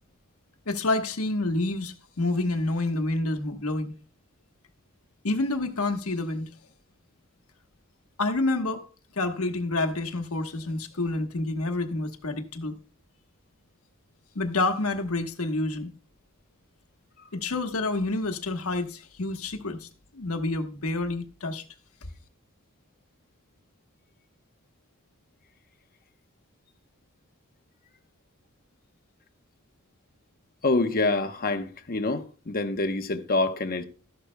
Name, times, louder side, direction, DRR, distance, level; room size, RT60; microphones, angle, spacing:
voice 1, 0.7-3.9 5.2-6.5 8.2-8.9 9.1-12.8 14.3-15.9 17.3-19.9 20.1-21.6, left 2 dB, 80° left, 1.2 m, -28 dB
voice 2, 30.6-33.8, left 2 dB, 45° left, 0.9 m, -26 dB
13.5 x 11.0 x 2.2 m
head